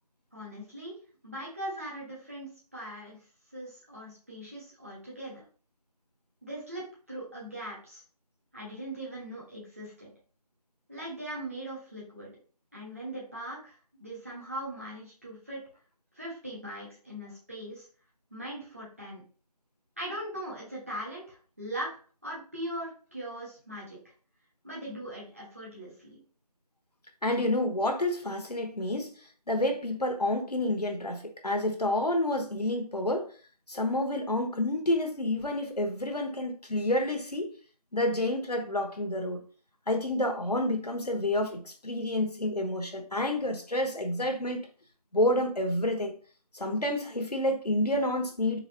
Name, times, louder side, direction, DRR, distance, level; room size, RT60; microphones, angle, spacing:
voice 1, 0.3-1.0 1.2-3.2 3.5-5.4 6.4-8.0 8.5-10.1 10.9-12.3 12.7-15.6 16.1-17.9 18.3-19.2 20.0-21.9 22.2-24.0 24.6-26.2, right 1 dB, 20° right, 1.2 m, -40 dB
voice 2, 27.2-29.1 29.5-33.3 33.7-37.5 37.9-39.4 39.9-44.7 45.1-46.1 46.5-48.6, left 1 dB, 75° left, 1.0 m, -29 dB
4.0 x 3.9 x 2.7 m
figure-of-eight pair, 170°, 21 cm